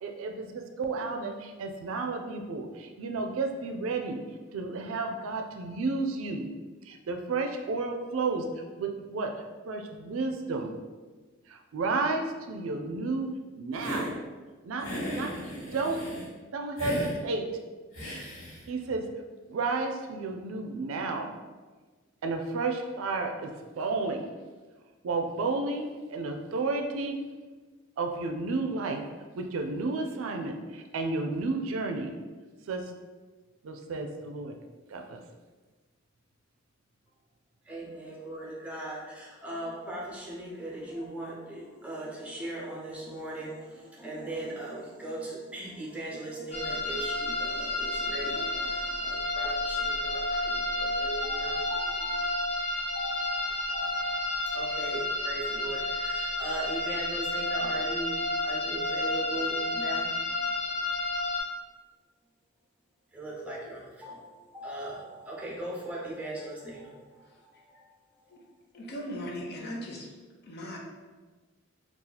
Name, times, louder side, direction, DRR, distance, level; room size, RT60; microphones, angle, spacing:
voice 1, 0.0-4.2 4.5-6.5 6.8-9.3 9.6-10.7 11.5-13.3 13.5-14.2 14.6-14.9 15.1-15.3 15.7-16.0 16.5-17.5 18.7-19.1 19.5-21.3 22.2-24.3 25.0-27.2 28.0-29.0 29.4-32.1 32.7-32.9 33.6-34.5 34.9-35.2, right 3 dB, 85° right, 4 dB, 0.4 m, -32 dB
Hiss, 13.7-14.1 14.8-16.3 16.8-17.1 17.9-18.6, equal, 75° left, 1.3 m, -36 dB
voice 2, 37.6-60.5 63.1-67.8 68.1-68.2, right 1 dB, 5° right, -4 dB, 0.7 m, -39 dB
sound 1, 46.5-61.4, left 2 dB, 40° left, 0.9 m, -31 dB
voice 3, 68.7-70.1 70.4-70.8, equal, 55° left, -1 dB, 0.6 m, -38 dB
2.8 x 2.4 x 3.9 m, 1.3 s
head